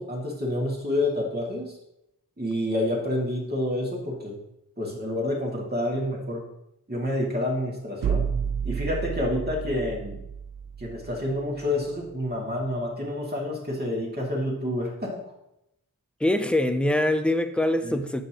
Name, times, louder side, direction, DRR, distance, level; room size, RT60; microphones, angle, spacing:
voice 1, 0.0-1.7 2.4-4.4 4.8-6.4 6.9-8.2 8.6-10.2 10.8-15.2 17.8-18.0, left 1 dB, 25° right, 2.4 m, -28 dB
sound 1, 8.0-11.9, right 7 dB, 60° right, 0.5 m, -31 dB
voice 2, 16.2-18.3, left 1 dB, 5° left, 0.6 m, -23 dB
7.4 x 6.5 x 3.0 m
cardioid pair, 40°, 37 cm